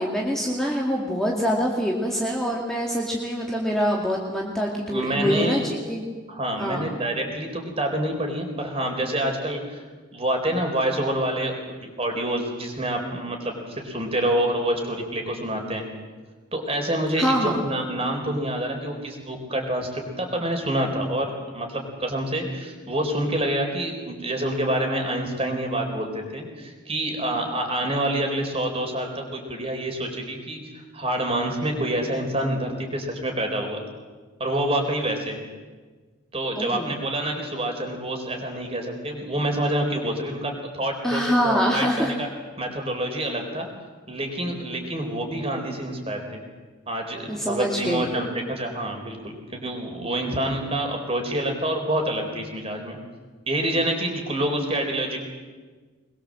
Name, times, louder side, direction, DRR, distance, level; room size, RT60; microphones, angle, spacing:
voice 1, 0.0-6.0 6.6-6.8 17.2-17.6 36.6-36.9 41.0-42.1 47.3-48.1, equal, ahead, -2 dB, 2.2 m, -25 dB
voice 2, 4.9-5.7 6.3-9.8 10.1-15.8 16.5-30.6 30.9-33.8 34.4-35.4 36.3-42.3 42.6-43.7 44.1-46.4 46.9-53.0 53.5-55.2, right 1 dB, 30° right, 3 dB, 4.4 m, -27 dB
23.0 x 21.5 x 7.7 m, 1.4 s
head